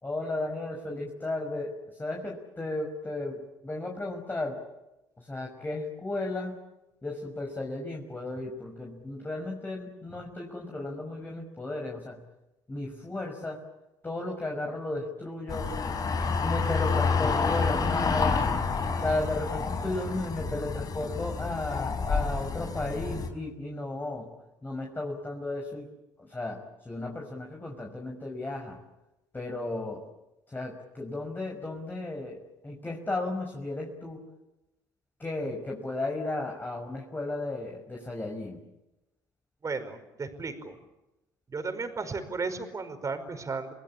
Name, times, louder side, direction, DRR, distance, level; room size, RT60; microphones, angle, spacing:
voice 1, 0.0-4.6 5.2-6.5 7.0-12.2 12.7-13.6 14.0-15.7 16.4-18.5 19.0-24.3 24.6-25.9 26.2-26.6 26.8-28.8 29.3-30.0 30.5-32.4 32.6-34.2 35.2-38.6, left 2 dB, 20° left, 1 dB, 6.0 m, -34 dB
sound 1, 15.5-23.3, left 4 dB, 40° left, 5.2 m, -29 dB
voice 2, 39.6-40.8 41.5-43.7, right 4 dB, 35° right, 9 dB, 5.2 m, -34 dB
29.5 x 20.0 x 8.7 m, 0.95 s
hypercardioid pair, 60°, 10 cm